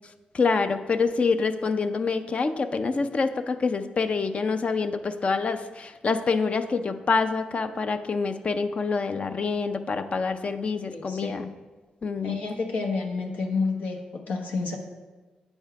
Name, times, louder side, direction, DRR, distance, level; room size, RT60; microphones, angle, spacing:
voice 1, 0.3-11.5 12.0-12.4, left 4 dB, 45° left, 9 dB, 0.5 m, -26 dB
voice 2, 10.9-11.3 12.2-14.8, left 4 dB, 85° left, 1 dB, 1.0 m, -29 dB
8.1 x 5.4 x 4.7 m, 1.3 s
cardioid pair, 70°, 3 cm